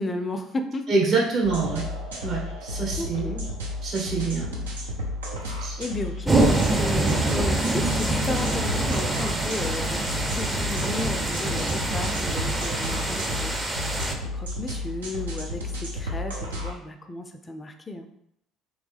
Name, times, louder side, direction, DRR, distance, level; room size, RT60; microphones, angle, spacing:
voice 1, 0.0-0.9 3.0-3.5 5.4-18.1, left 2 dB, 25° left, 6 dB, 0.4 m, -34 dB
voice 2, 0.9-1.9 2.2-3.3 3.8-4.6 5.6-5.8, right 4 dB, 50° right, -2 dB, 1.2 m, -26 dB
sound 1, 1.4-16.7, left 1 dB, 80° right, 0.7 m, -33 dB
sound 2, 6.2-14.1, right 2 dB, 15° right, 0.6 m, -25 dB
3.2 x 3.0 x 3.4 m, 0.74 s
figure-of-eight pair, 55°, 0 cm